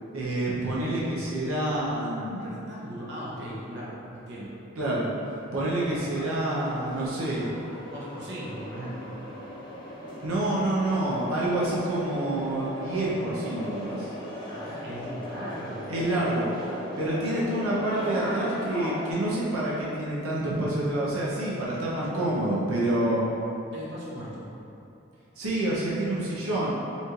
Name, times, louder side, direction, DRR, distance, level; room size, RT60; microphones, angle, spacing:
voice 1, 0.1-2.4 4.8-5.1 5.5-7.5 10.2-14.1 15.9-16.5 17.0-23.3 25.4-26.7, right 1 dB, 85° right, -6 dB, 0.7 m, -27 dB
voice 2, 2.3-4.6 7.9-9.1 14.5-15.9 23.7-24.5, equal, 55° right, -6 dB, 0.8 m, -38 dB
sound 1, 5.9-19.1, equal, 20° left, 0.7 m, -38 dB
5.3 x 3.1 x 2.4 m, 2.8 s
head